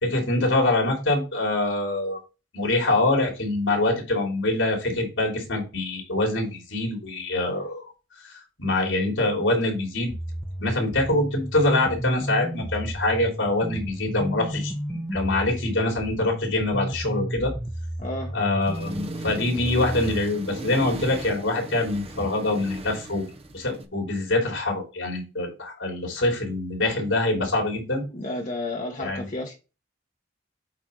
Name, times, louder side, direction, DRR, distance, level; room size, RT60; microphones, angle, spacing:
voice 1, 0.0-2.2 2.5-7.9 8.2-8.3 8.6-10.1 10.6-17.5 18.3-23.2 23.5-28.0 29.0-29.2, left 2 dB, 80° left, 3.3 m, -25 dB
sound 1, 10.1-20.2, equal, ahead, 0.8 m, -33 dB
voice 2, 18.0-18.3 28.1-29.5, left 2 dB, 40° left, 1.2 m, -32 dB
Accelerating revving vroom, 18.6-23.8, right 2 dB, 30° right, 0.8 m, -38 dB
8.3 x 4.5 x 3.9 m
head